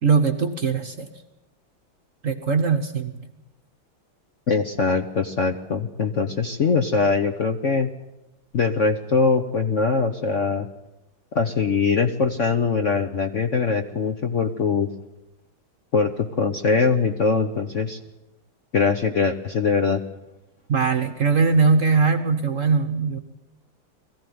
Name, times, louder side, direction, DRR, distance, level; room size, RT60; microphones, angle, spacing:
voice 1, 0.0-1.1 2.2-3.3 20.7-23.2, right 5 dB, 50° right, 7 dB, 1.1 m, -21 dB
voice 2, 4.5-7.9 8.5-10.7 11.3-14.9 15.9-18.0 18.7-20.0, left 4 dB, 50° left, 6 dB, 1.0 m, -22 dB
21.5 x 15.0 x 9.5 m, 1.0 s
omnidirectional pair, 2.3 m